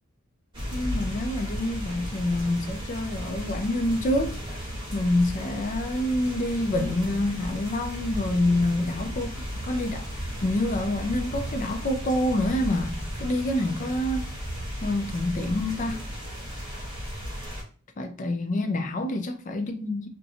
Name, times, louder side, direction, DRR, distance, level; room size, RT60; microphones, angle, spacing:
sound 1, 0.5-17.6, equal, 20° right, 1.1 m, -35 dB
voice 1, 0.7-4.3 4.9-14.3 14.8-16.0 18.0-20.1, left 1 dB, 35° left, 0.4 m, -27 dB
2.6 x 2.1 x 2.7 m
head